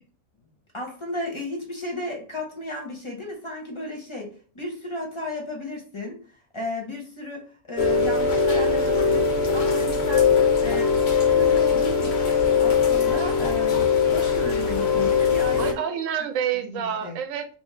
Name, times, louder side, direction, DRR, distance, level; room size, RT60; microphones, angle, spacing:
voice 1, 0.7-10.3 10.6-11.0 11.3-15.8 16.2-16.3 16.6-17.2, left 2 dB, 30° left, 0.7 m, -34 dB
Rain, 7.8-15.7, left 5 dB, 60° left, 0.8 m, -21 dB
voice 2, 15.6-17.5, right 8 dB, 75° right, 0.9 m, -28 dB
2.9 x 2.5 x 3.6 m
omnidirectional pair, 1.4 m